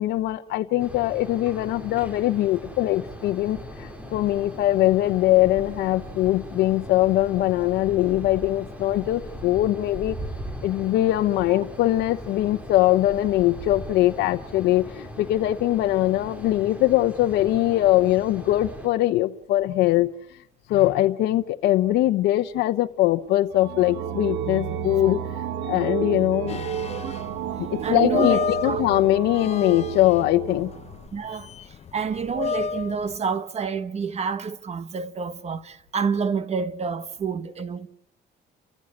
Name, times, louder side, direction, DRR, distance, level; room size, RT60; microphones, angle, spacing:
voice 1, 0.0-10.2 10.6-20.2 20.7-25.2 25.7-26.6 27.6-30.7, left 15 dB, 80° left, 0.9 m, -22 dB
sound 1, 0.8-18.9, equal, 10° right, 3.8 m, -39 dB
sound 2, 23.5-31.1, right 9 dB, 90° right, 1.7 m, -31 dB
sound 3, 26.5-33.2, left 6 dB, 40° left, 0.8 m, -31 dB
voice 2, 27.8-28.8 31.1-31.5 31.9-37.9, right 5 dB, 40° right, 1.3 m, -28 dB
30.0 x 15.0 x 8.6 m
cardioid pair, 110°, 17 cm